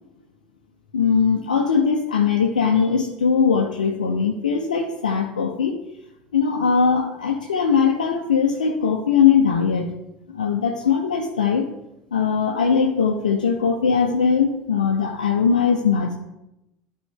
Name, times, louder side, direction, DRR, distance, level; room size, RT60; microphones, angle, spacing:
voice 1, 0.9-5.7 6.3-9.9 10.3-11.7 12.1-16.2, left 6 dB, 85° left, 1 dB, 0.6 m, -20 dB
12.0 x 4.5 x 3.6 m, 0.90 s
hypercardioid pair, 70°, 4 cm